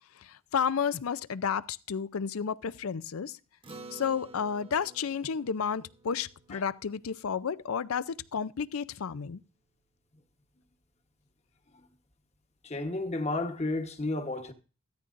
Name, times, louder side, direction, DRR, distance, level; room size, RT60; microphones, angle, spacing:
voice 1, 0.2-3.4 3.9-9.4, left 6 dB, 80° left, 0.5 m, -32 dB
Acoustic guitar, 3.6-8.3, right 3 dB, 25° right, 1.0 m, -51 dB
voice 2, 12.6-14.5, left 2 dB, 30° left, 1.1 m, -32 dB
14.5 x 13.0 x 2.6 m
head